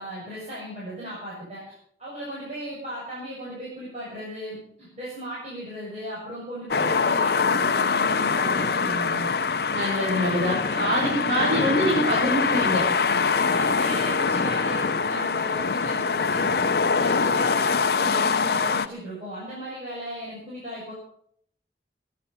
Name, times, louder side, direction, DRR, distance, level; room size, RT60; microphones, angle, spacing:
voice 1, 0.0-1.6 2.0-9.3 9.9-10.2 10.7-11.2 13.0-20.9, equal, 40° right, -7 dB, 6.9 m, -36 dB
sound 1, 6.7-18.9, left 5 dB, 60° left, 0.6 m, -24 dB
voice 2, 9.7-12.9, equal, 65° right, -6 dB, 6.5 m, -24 dB
18.5 x 11.5 x 5.7 m, 0.66 s
head